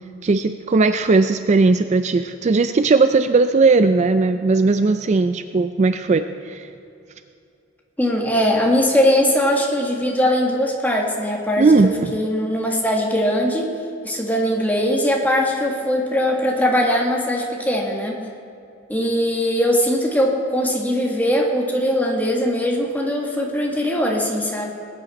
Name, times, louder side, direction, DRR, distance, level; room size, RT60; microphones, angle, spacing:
voice 1, 0.2-6.7 11.6-12.1, right 3 dB, 35° right, 10 dB, 0.4 m, -17 dB
voice 2, 8.0-13.7 14.0-18.2 18.9-24.7, equal, 10° left, -1 dB, 1.7 m, -20 dB
19.5 x 9.2 x 4.2 m, 2.6 s
head